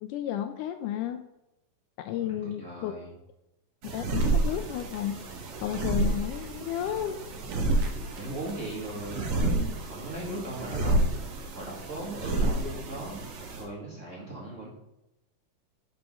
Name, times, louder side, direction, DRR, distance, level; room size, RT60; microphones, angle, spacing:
voice 1, 0.0-1.3 2.0-2.9 3.8-5.2 5.6-7.2 12.4-12.5, left 11 dB, 80° left, 8 dB, 1.9 m, -32 dB
voice 2, 2.2-3.1 8.0-11.0 11.5-13.2 13.5-14.7, right 1 dB, 25° right, -5 dB, 2.0 m, -38 dB
sound 1, 3.8-13.6, right 2 dB, 55° right, 2.1 m, -30 dB
11.5 x 6.1 x 3.8 m, 0.90 s
omnidirectional pair, 3.9 m